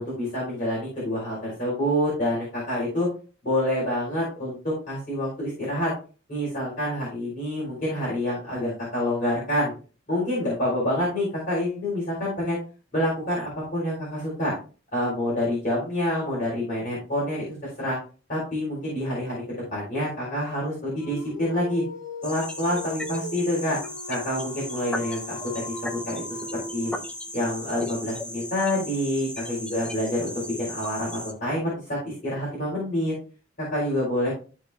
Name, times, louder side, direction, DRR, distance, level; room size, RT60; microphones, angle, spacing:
voice 1, 0.0-3.1 3.4-5.9 6.3-9.7 10.1-12.6 12.9-14.5 14.9-17.4 17.8-18.0 18.3-19.4 19.7-21.8 22.2-23.8 24.1-26.9 27.3-30.3 30.6-33.2 33.7-34.3, left 1 dB, 40° left, -7 dB, 3.9 m, -27 dB
Dog, 21.0-27.3, left 2 dB, 70° left, 1.5 m, -39 dB
sound 1, 22.2-31.3, left 1 dB, 5° left, 0.5 m, -37 dB
13.0 x 4.4 x 2.3 m, 0.36 s
head